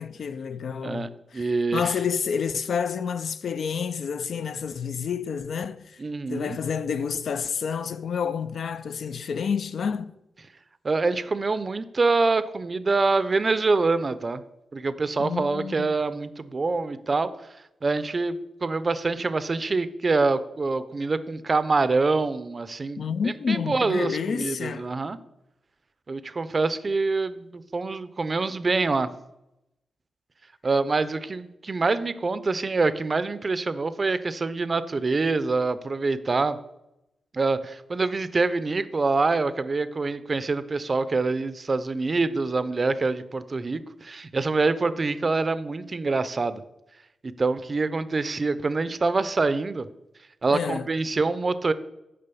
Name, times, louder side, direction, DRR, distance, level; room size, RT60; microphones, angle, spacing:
voice 1, 0.0-6.0 6.3-10.1 15.2-15.9 23.0-24.9 50.5-50.9, left 6 dB, 70° left, 0.4 m, -29 dB
voice 2, 0.8-1.9 6.0-6.6 10.8-14.4 14.7-17.3 17.8-25.2 26.1-29.1 30.6-36.6 37.3-46.6 47.4-49.9 50.4-51.7, right 3 dB, 35° right, 0.5 m, -25 dB
6.7 x 5.1 x 6.9 m
wide cardioid pair, 100°, 0 cm